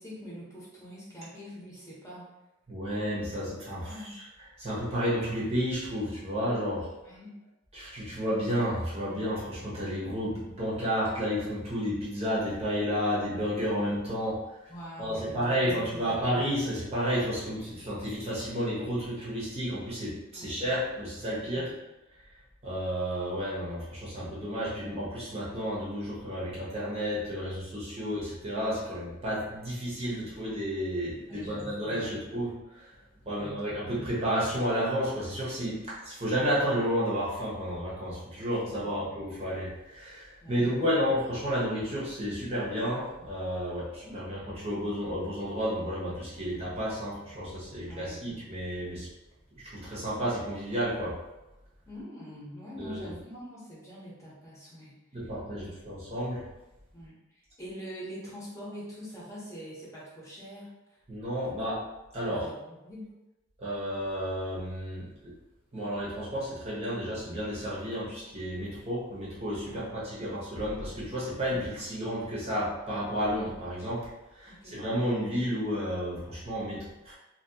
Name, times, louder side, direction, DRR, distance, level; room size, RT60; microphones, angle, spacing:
voice 1, 0.0-2.3 3.9-4.2 7.0-7.3 14.7-15.8 16.2-16.3 20.3-20.5 21.5-21.8 28.0-28.1 31.3-32.2 33.3-34.1 40.4-40.8 44.0-44.2 47.9-48.2 51.9-55.0 55.6-55.9 56.9-61.0 62.3-63.1 69.6-69.8 74.5-74.8, equal, 15° left, -7 dB, 1.0 m, -44 dB
voice 2, 2.7-4.3 4.6-6.9 7.7-14.7 15.0-21.7 22.6-32.9 33.2-49.1 49.6-51.2 52.8-53.0 55.1-56.4 61.1-61.8 62.1-62.4 63.6-65.3 65.7-74.1 74.3-77.1, equal, 30° right, -7 dB, 1.0 m, -31 dB
2.9 x 2.9 x 2.7 m, 0.99 s
head